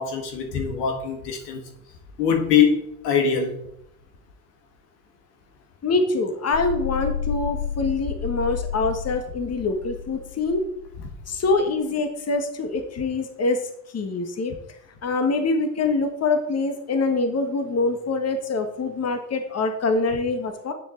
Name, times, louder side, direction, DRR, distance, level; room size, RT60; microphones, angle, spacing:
voice 1, 0.0-1.7 2.2-3.7, left 7 dB, 80° left, 4 dB, 1.9 m, -23 dB
voice 2, 5.8-10.6 11.3-13.6 13.9-14.5 15.0-20.7, left 3 dB, 30° left, 6 dB, 1.7 m, -24 dB
sound 1, 6.5-11.1, left 7 dB, 50° left, 0.8 m, -31 dB
10.0 x 7.6 x 4.0 m, 0.72 s
hypercardioid pair, 70°, 47 cm